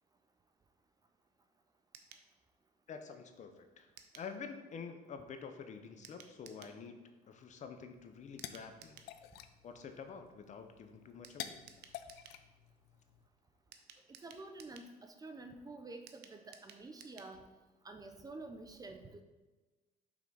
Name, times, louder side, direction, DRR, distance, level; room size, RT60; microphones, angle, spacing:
sound 1, 1.9-2.3 4.0-4.3 6.0-6.8 8.4-9.1 11.2-12.4 13.7-14.9 16.1-17.3 17.6-17.7 18.0-18.1, right 8 dB, 80° right, 0.6 m, -57 dB
voice 1, 2.9-7.0 7.3-9.0 9.6-11.6, left 6 dB, 45° left, 7 dB, 0.6 m, -48 dB
sound 2, 8.0-13.3, left 11 dB, 85° left, 0.4 m, -51 dB
voice 2, 14.2-17.4 17.8-19.2, right 2 dB, 20° right, 6 dB, 0.5 m, -49 dB
5.7 x 3.8 x 4.7 m, 1.2 s
cardioid pair, 110°, 17 cm